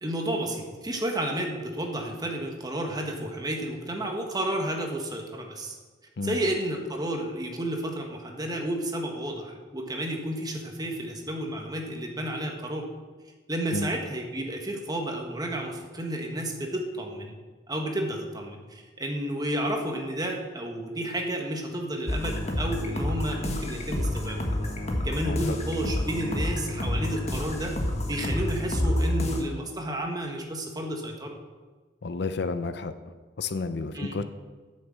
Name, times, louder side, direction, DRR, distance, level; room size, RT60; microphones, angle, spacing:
voice 1, 0.0-5.8 6.2-12.8 13.5-17.3 17.7-24.7 25.0-27.7 28.1-31.3 33.9-34.2, right 1 dB, 20° right, 2 dB, 1.4 m, -31 dB
sound 1, 22.1-29.4, left 1 dB, 35° left, 1.3 m, -29 dB
voice 2, 25.2-25.6 32.0-32.9 33.4-34.2, left 3 dB, 60° left, 11 dB, 0.6 m, -31 dB
9.0 x 6.5 x 7.4 m, 1.4 s
head